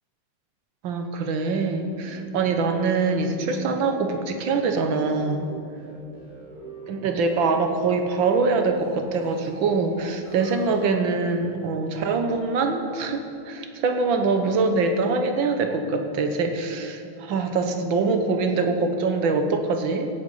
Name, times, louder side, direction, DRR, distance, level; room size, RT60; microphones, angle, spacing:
voice 1, 0.8-5.5 6.9-20.1, right 4 dB, 70° right, 5 dB, 1.7 m, -24 dB
sound 1, 1.6-10.8, right 3 dB, 55° right, 4.0 m, -44 dB
16.0 x 8.1 x 5.4 m, 2.4 s
omnidirectional pair, 2.3 m